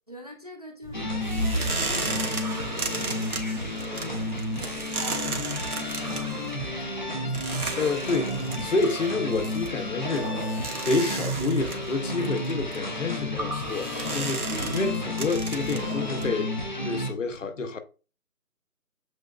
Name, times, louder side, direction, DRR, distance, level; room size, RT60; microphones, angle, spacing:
voice 1, 0.1-8.1 9.3-9.7 14.9-15.0, equal, 30° right, 0.5 m, -46 dB
sound 1, 0.8-16.3, right 3 dB, 80° right, 1.3 m, -34 dB
sound 2, 0.9-17.1, left 1 dB, 35° left, 0.5 m, -32 dB
voice 2, 7.8-10.4 10.8-16.5 16.8-17.8, left 3 dB, 60° left, 0.8 m, -28 dB
7.6 x 3.0 x 2.2 m
figure-of-eight pair, 155°, 43 cm